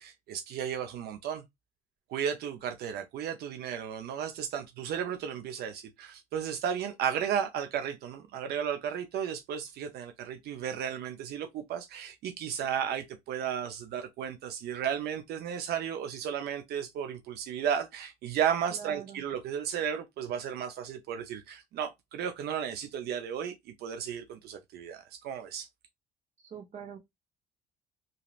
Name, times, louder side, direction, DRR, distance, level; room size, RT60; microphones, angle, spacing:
voice 1, 0.0-1.4 2.1-25.7, right 8 dB, 70° right, 0.5 m, -34 dB
voice 2, 18.7-19.2 26.4-27.0, right 8 dB, 45° right, 1.1 m, -44 dB
3.1 x 2.7 x 2.4 m
cardioid pair, 110°, 17 cm